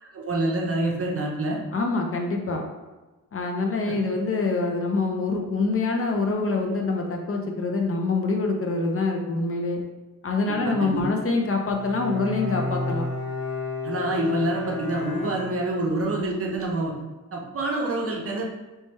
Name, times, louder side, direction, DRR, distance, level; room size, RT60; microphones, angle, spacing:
voice 1, 0.0-1.6 3.8-4.0 10.5-11.0 13.8-17.0 17.3-18.4, right 1 dB, 40° right, -1 dB, 0.6 m, -27 dB
voice 2, 1.7-2.7 3.3-9.8 10.2-13.1, left 3 dB, 40° left, 2 dB, 0.5 m, -25 dB
Bowed string instrument, 11.6-16.0, left 2 dB, 65° left, 1.2 m, -32 dB
3.2 x 3.1 x 3.2 m, 1.2 s
wide cardioid pair, 140°, 35 cm